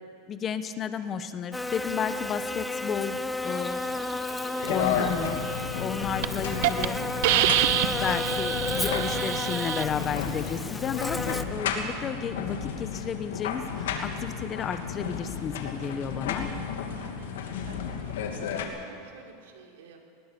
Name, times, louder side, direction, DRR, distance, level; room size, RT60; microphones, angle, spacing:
voice 1, 0.3-3.8 4.7-5.4 5.8-7.0 7.9-16.5, left 7 dB, 25° left, 11 dB, 1.1 m, -32 dB
Buzz, 1.5-11.4, left 2 dB, 5° left, 0.7 m, -33 dB
sound 1, 4.6-18.6, left 7 dB, 90° left, 2.6 m, -33 dB
Hiss, 5.6-5.8 6.2-6.3 6.6-6.9 7.2-9.8, right 14 dB, 65° right, 0.9 m, -26 dB
voice 2, 6.5-7.1 16.9-17.8 18.0-20.0, right 6 dB, 90° right, 1 dB, 3.7 m, -50 dB
20.0 x 20.0 x 7.0 m, 2.4 s
supercardioid pair, 145°, 0 cm